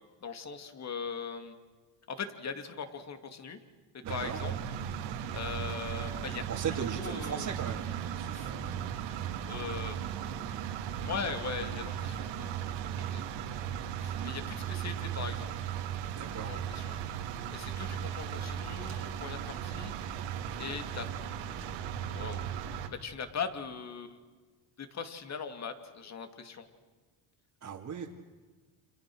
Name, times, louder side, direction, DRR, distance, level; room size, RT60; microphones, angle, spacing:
voice 1, 0.2-1.5 2.1-3.6 4.1-4.5 5.3-6.4 6.9-7.5 8.3-8.5 9.5-10.0 11.0-12.5 13.1-13.2 14.0-15.5 16.4-17.0 17.5-19.9 20.6-21.1 22.1-22.5 22.9-24.2 24.8-26.7, left 6 dB, 35° left, 8 dB, 2.8 m, -40 dB
voice 2, 4.0-4.4 6.5-7.8 8.2-8.7 16.2-16.5 27.6-28.1, right 7 dB, 35° right, -3 dB, 2.6 m, -38 dB
sound 1, 4.1-22.9, right 9 dB, 90° right, 2.7 m, -37 dB
30.0 x 28.5 x 6.4 m, 1.4 s
cardioid pair, 135°, 44 cm